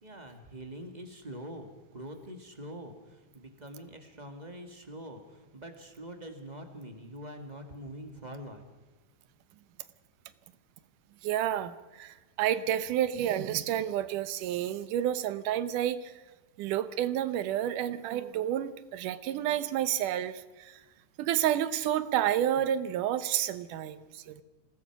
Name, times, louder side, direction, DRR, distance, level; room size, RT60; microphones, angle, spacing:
voice 1, 0.0-8.6, equal, 20° right, 5 dB, 1.5 m, -44 dB
voice 2, 11.2-16.1 16.6-20.8 21.2-24.4, right 11 dB, 85° right, 14 dB, 2.5 m, -30 dB
26.5 x 18.5 x 6.0 m, 1.2 s
omnidirectional pair, 3.6 m